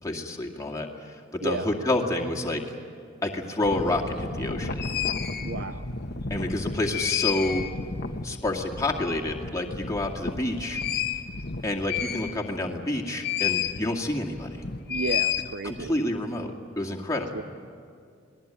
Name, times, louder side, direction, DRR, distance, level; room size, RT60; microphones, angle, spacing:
voice 1, 0.0-2.6 3.2-4.9 6.3-7.7 8.2-10.8 11.6-14.6 15.6-17.4, left 1 dB, 15° left, 0 dB, 2.2 m, -29 dB
sound 1, 3.6-12.7 13.2-13.8 14.1-15.9, left 7 dB, 50° left, 1.3 m, -31 dB
voice 2, 5.4-5.8 14.9-15.9 17.3-17.4, right 3 dB, 55° right, 11 dB, 0.7 m, -32 dB
28.0 x 20.5 x 9.0 m, 2.3 s
head